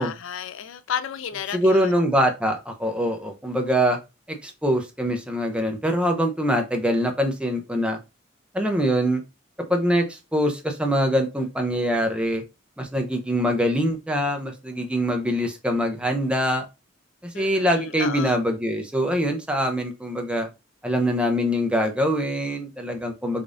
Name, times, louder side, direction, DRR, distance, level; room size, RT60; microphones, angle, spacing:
voice 1, 0.0-2.0 17.3-18.4, left 8 dB, 80° left, 0.4 m, -32 dB
voice 2, 1.5-4.0 4.3-8.0 8.5-9.2 9.7-12.4 12.8-16.7 17.2-20.5 20.8-23.4, equal, 5° right, 0.6 m, -23 dB
5.0 x 2.5 x 2.5 m
head